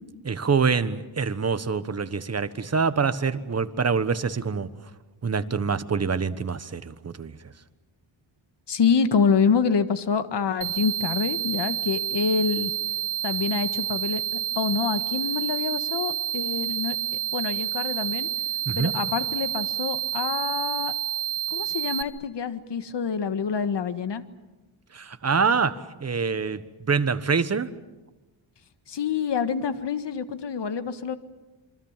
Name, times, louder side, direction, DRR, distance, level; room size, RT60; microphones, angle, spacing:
voice 1, 0.3-4.7 5.2-7.4 18.7-18.9 24.9-27.7, right 5 dB, 35° right, 12 dB, 1.3 m, -25 dB
voice 2, 8.7-12.7 13.2-14.2 14.5-17.0 17.3-18.3 18.7-20.9 21.5-24.2 28.9-31.2, left 6 dB, 60° left, 11 dB, 1.7 m, -26 dB
sound 1, 10.6-22.0, right 11 dB, 85° right, 1.4 m, -29 dB
27.5 x 24.0 x 7.4 m, 1.1 s
wide cardioid pair, 110°, 47 cm